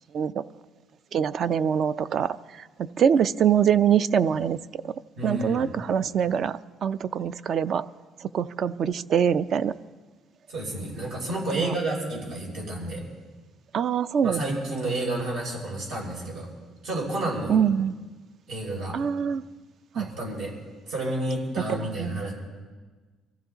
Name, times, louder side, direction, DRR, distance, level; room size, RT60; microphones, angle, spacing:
voice 1, 1.1-2.4 2.8-4.6 4.8-4.9 5.2-7.8 8.3-9.7 11.5-11.7 13.7-14.4 17.5-17.9 18.9-19.4 20.0-20.1 21.7-22.2, right 8 dB, 50° right, 15 dB, 0.4 m, -24 dB
voice 2, 5.2-5.7 10.5-13.0 14.2-16.5 16.8-17.6 18.5-19.0 19.9-20.5 20.9-22.3, right 1 dB, 75° right, -2 dB, 5.8 m, -30 dB
24.5 x 14.5 x 3.9 m, 1.4 s
cardioid pair, 125°, 0 cm